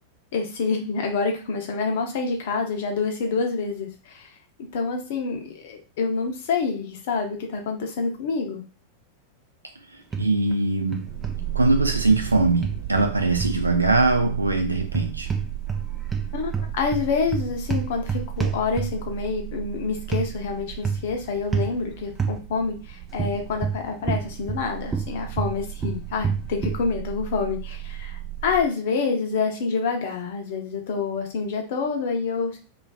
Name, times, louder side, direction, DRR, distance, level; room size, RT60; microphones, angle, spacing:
voice 1, 0.3-4.3 4.7-8.6 16.3-32.6, left 4 dB, 55° left, 0.6 m, -27 dB
sound 1, 10.1-10.6 10.9-11.4 12.6-13.6 14.9-15.8 16.1-19.1 20.1-20.3 20.8-21.1 21.5-21.7 22.2-22.4 23.2-24.6 24.9-26.8, right 5 dB, 15° right, 0.4 m, -27 dB
voice 2, 10.2-11.1 11.5-15.3, right 3 dB, 80° right, 0.4 m, -21 dB
sound 2, 10.9-28.7, right 13 dB, 55° right, 0.9 m, -35 dB
2.3 x 2.3 x 2.3 m
figure-of-eight pair, 90°, 0 cm